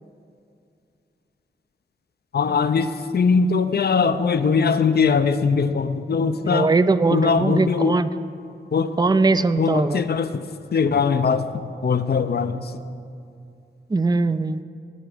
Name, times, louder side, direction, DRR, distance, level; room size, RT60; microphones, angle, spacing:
voice 1, 2.3-6.7 7.1-7.9 8.7-8.9 9.6-10.5 10.7-11.4 11.8-12.7, left 5 dB, 50° left, 10 dB, 0.6 m, -21 dB
voice 2, 6.4-8.1 9.0-10.0 13.9-14.6, right 3 dB, 20° right, 14 dB, 0.4 m, -20 dB
16.5 x 9.1 x 5.0 m, 2.5 s
wide cardioid pair, 80°, 20 cm